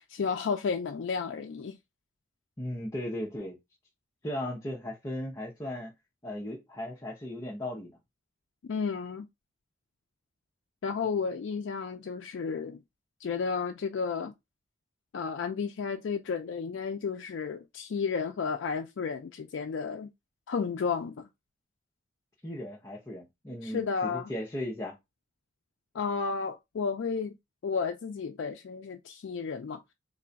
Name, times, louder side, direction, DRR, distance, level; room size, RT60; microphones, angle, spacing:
voice 1, 0.0-1.8 8.6-9.3 10.8-12.8 13.2-14.3 15.1-20.1 20.5-21.3 23.6-24.3 25.9-27.4 27.6-29.8, left 5 dB, 75° left, 0.4 m, -32 dB
voice 2, 2.6-3.6 4.2-5.9 6.2-7.9 22.4-25.0, left 1 dB, 15° left, 0.6 m, -36 dB
3.2 x 2.3 x 3.9 m
head